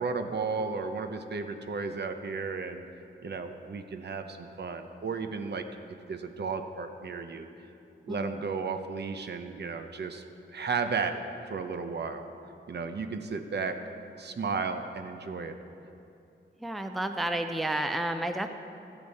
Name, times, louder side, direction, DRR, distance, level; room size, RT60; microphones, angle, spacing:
voice 1, 0.0-2.8 3.2-5.6 6.1-7.5 8.0-10.2 10.5-12.2 12.7-13.8 14.2-15.5, right 4 dB, 60° right, 7 dB, 0.8 m, -34 dB
voice 2, 16.6-18.5, right 1 dB, ahead, 6 dB, 0.5 m, -31 dB
14.0 x 10.0 x 4.2 m, 2.6 s
wide cardioid pair, 120°, 20 cm